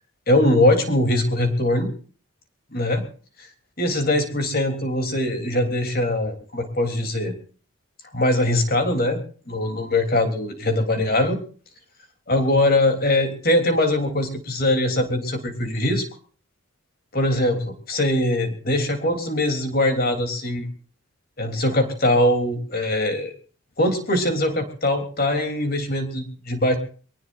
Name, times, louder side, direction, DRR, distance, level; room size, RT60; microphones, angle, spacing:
voice 1, 0.3-1.9 2.7-3.0 3.4-3.5 3.8-7.3 8.1-9.2 9.5-11.4 12.3-16.0 17.1-20.7 21.4-23.3 23.8-26.8, left 1 dB, 45° left, 5 dB, 3.4 m, -22 dB
24.0 x 18.5 x 2.6 m, 0.40 s
head